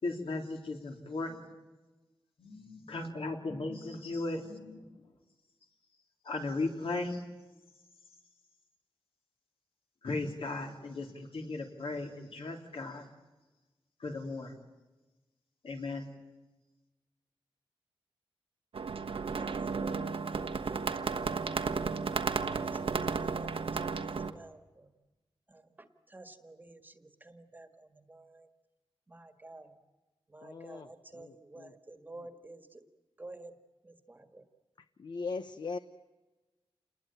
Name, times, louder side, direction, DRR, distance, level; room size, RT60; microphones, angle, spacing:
voice 1, 0.0-1.5 2.4-4.8 6.2-7.2 10.0-13.1 14.0-14.5 15.6-16.1, left 2 dB, 70° left, 3 dB, 3.6 m, -36 dB
sound 1, 18.7-24.3, right 5 dB, 70° right, 1.3 m, -33 dB
voice 2, 19.3-21.8 22.5-24.9 25.5-28.5 29.1-29.8 30.3-32.8 33.2-33.5 33.8-34.4, right 2 dB, 20° right, 8 dB, 1.7 m, -51 dB
voice 3, 30.4-30.9 31.1-31.7 35.0-35.8, left 4 dB, 50° left, 11 dB, 0.8 m, -39 dB
29.0 x 21.0 x 9.0 m, 1.2 s
wide cardioid pair, 175°, 10 cm